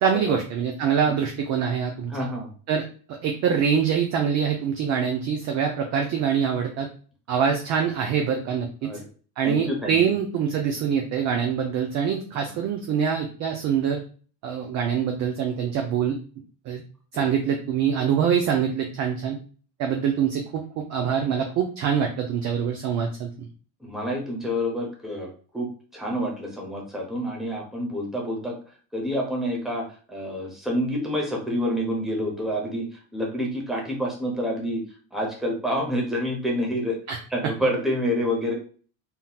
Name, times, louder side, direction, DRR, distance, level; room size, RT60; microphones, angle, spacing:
voice 1, 0.0-2.1 2.7-2.8 3.2-6.9 7.3-8.9 9.4-14.0 14.4-16.2 16.7-16.8 17.1-19.4 19.8-23.5 37.1-37.2, right 7 dB, 40° right, 3 dB, 0.4 m, -24 dB
voice 2, 2.1-2.5 8.8-9.1 9.4-9.9 12.4-12.5 17.1-17.3 23.8-25.3 25.5-28.5 28.9-34.8 35.1-37.0 37.3-38.5, equal, ahead, -2 dB, 0.6 m, -28 dB
3.6 x 2.8 x 2.2 m, 0.41 s
cardioid pair, 165°, 43 cm